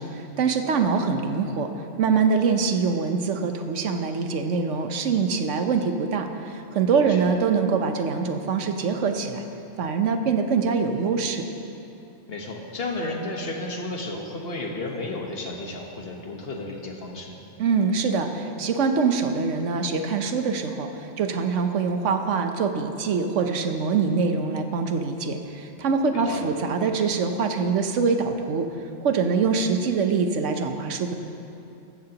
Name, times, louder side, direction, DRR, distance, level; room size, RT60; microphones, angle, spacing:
voice 1, 0.0-1.7 2.0-9.4 9.8-11.4 17.6-20.9 21.2-28.7 29.0-31.1, right 5 dB, 85° right, 6 dB, 1.2 m, -24 dB
voice 2, 12.3-17.4 26.1-26.5, left 2 dB, 55° left, 1 dB, 1.4 m, -33 dB
14.5 x 13.5 x 2.9 m, 2.7 s
omnidirectional pair, 1.2 m